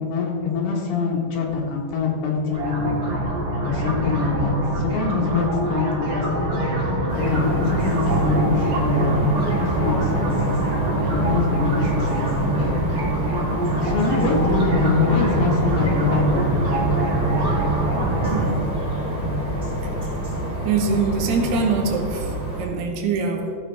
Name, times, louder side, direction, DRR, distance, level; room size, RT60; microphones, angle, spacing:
voice 1, 0.0-3.1 3.7-6.9 7.3-9.2 9.6-10.4 11.1-12.8 13.8-16.5, left 4 dB, 70° left, -1 dB, 3.2 m, -24 dB
sound 1, 2.5-18.5, right 1 dB, 50° right, 4.2 m, -25 dB
sound 2, 7.1-22.6, right 1 dB, 20° right, 1.8 m, -26 dB
voice 2, 18.3-18.6 19.8-19.9 20.6-23.6, right 4 dB, 75° right, 3 dB, 2.8 m, -24 dB
14.5 x 7.1 x 3.3 m, 2.1 s
omnidirectional pair, 5.0 m